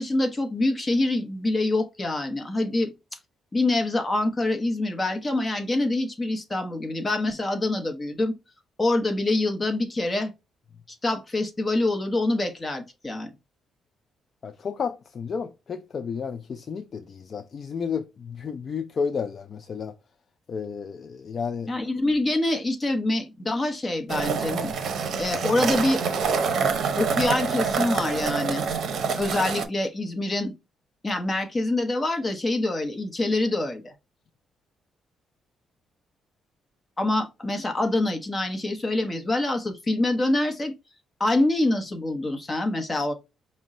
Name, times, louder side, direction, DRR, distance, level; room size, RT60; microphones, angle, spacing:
voice 1, 0.0-2.9 3.5-8.3 8.8-10.3 10.9-13.3 21.7-24.7 25.2-26.0 27.0-28.6 29.2-30.5 31.0-33.9 37.0-40.7 41.2-43.1, left 2 dB, 20° left, 0.9 m, -25 dB
voice 2, 14.4-19.9 20.5-21.7, left 6 dB, 40° left, 0.3 m, -32 dB
sound 1, 24.1-29.7, right 5 dB, 60° right, 0.7 m, -26 dB
5.2 x 2.1 x 3.6 m
cardioid pair, 125°, 0 cm